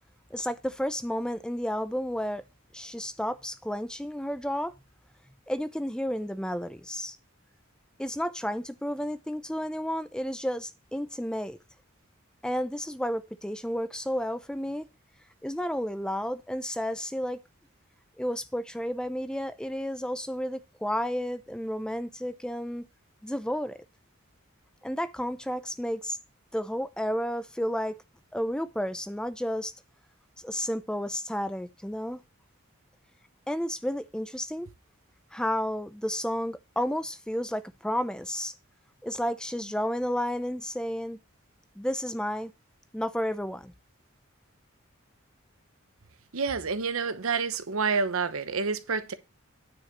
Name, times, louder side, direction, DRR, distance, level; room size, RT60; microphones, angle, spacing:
voice 1, 0.3-2.4 2.7-4.7 5.5-7.2 8.0-11.6 12.4-14.9 15.4-17.4 18.2-22.8 23.2-23.8 24.8-26.2 26.5-28.0 28.3-29.7 30.4-32.2 33.5-34.7 35.3-38.5 39.0-41.2 41.8-42.5 42.9-43.7, equal, 5° left, 0.5 m, -31 dB
voice 2, 46.3-49.1, right 5 dB, 90° right, 1.0 m, -28 dB
9.6 x 4.8 x 5.9 m
head